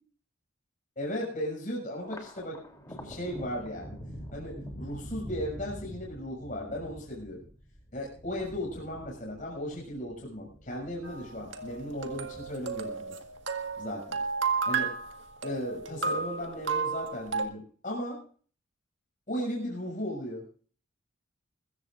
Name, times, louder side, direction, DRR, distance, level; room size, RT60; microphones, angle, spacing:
voice 1, 1.0-2.6 2.9-4.0 4.3-7.4 7.9-13.1 13.8-14.2 14.6-14.9 15.4-18.2 19.3-20.5, equal, 40° left, -2 dB, 6.2 m, -36 dB
Thunder, 2.0-14.6 15.0-15.8 16.2-17.0, equal, 15° left, 3.0 m, -46 dB
sound 1, 11.0-17.4, right 5 dB, 60° right, 1.7 m, -32 dB
23.0 x 14.5 x 2.5 m, 0.43 s
head